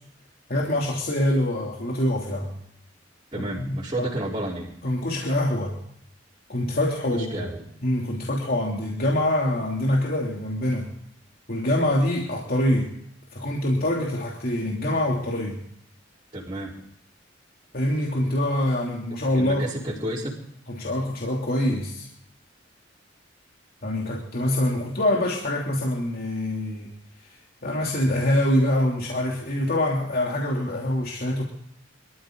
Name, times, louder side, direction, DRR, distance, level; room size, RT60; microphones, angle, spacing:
voice 1, 0.5-2.5 3.4-4.1 4.8-5.8 6.5-7.5 7.8-10.9 11.5-12.9 13.3-15.6 17.7-19.6 20.7-22.1 23.8-26.9 27.6-31.4, left 1 dB, 50° left, -2 dB, 3.1 m, -25 dB
voice 2, 3.3-4.7 7.1-7.6 16.3-16.8 19.3-20.4, right 1 dB, 25° right, -8 dB, 4.8 m, -31 dB
25.0 x 14.0 x 4.0 m, 0.71 s
head